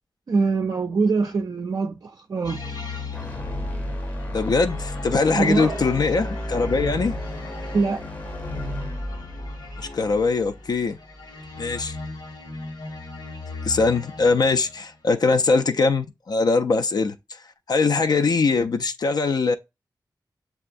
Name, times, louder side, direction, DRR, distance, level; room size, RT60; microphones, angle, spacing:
voice 1, 0.3-2.6 5.3-5.8 7.7-8.1, right 4 dB, 55° right, 0.4 m, -23 dB
sound 1, 2.4-15.0, left 3 dB, 75° left, 1.3 m, -37 dB
sound 2, 3.1-11.3, equal, 20° left, 0.6 m, -33 dB
voice 2, 4.3-7.1 9.8-11.0 11.6-12.0 13.6-17.4 17.7-19.5, left 4 dB, 60° left, 0.3 m, -22 dB
6.7 x 2.3 x 2.5 m
wide cardioid pair, 85°, 8 cm